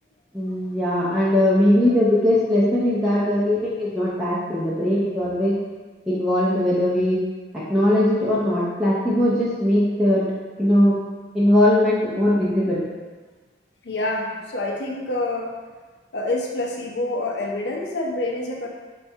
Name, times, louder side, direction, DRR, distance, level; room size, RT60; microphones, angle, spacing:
voice 1, 0.3-5.5 6.1-7.2 7.7-10.2 10.6-10.9 11.3-12.8, left 1 dB, ahead, -10 dB, 0.5 m, -20 dB
voice 2, 13.8-15.5 16.1-18.7, left 2 dB, 70° left, 0 dB, 0.5 m, -27 dB
4.2 x 2.3 x 2.7 m, 1.3 s
head